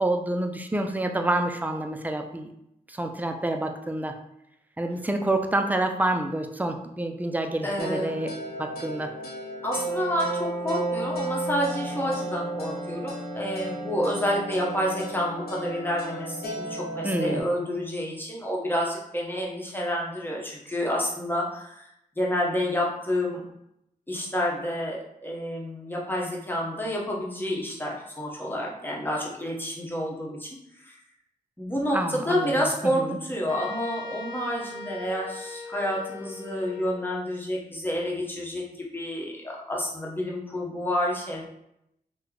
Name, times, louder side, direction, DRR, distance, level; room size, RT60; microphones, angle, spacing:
voice 1, 0.0-2.5 2.9-4.2 4.8-9.1 17.0-17.4 31.9-33.2, right 1 dB, 10° right, 5 dB, 0.4 m, -28 dB
voice 2, 7.6-8.3 9.6-23.4 24.1-30.5 30.7-31.0 31.6-41.4, equal, 15° left, -3 dB, 1.0 m, -29 dB
sound 1, 7.8-17.4, right 2 dB, 90° left, 0.8 m, -33 dB
sound 2, 33.5-37.1, left 3 dB, 35° left, 0.8 m, -39 dB
3.1 x 2.2 x 3.8 m, 0.80 s
cardioid pair, 55°, 16 cm